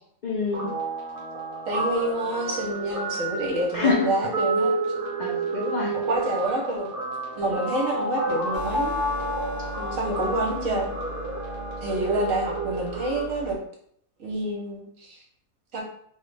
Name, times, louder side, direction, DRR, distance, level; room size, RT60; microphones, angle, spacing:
voice 1, 0.2-0.7 3.7-4.1 5.2-6.0 9.8-10.4, left 5 dB, 80° left, -2 dB, 0.4 m, -27 dB
Guitar, 0.5-13.2, right 2 dB, 45° right, 1.0 m, -30 dB
voice 2, 1.7-4.7 5.9-6.9 7.4-9.0 9.9-10.9 11.8-13.6 14.2-15.2 15.7-15.8, right 2 dB, 70° right, -1 dB, 1.2 m, -28 dB
sound 1, 8.5-13.5, right 1 dB, 55° left, 0.8 m, -38 dB
3.1 x 2.3 x 3.2 m, 0.65 s
omnidirectional pair, 1.5 m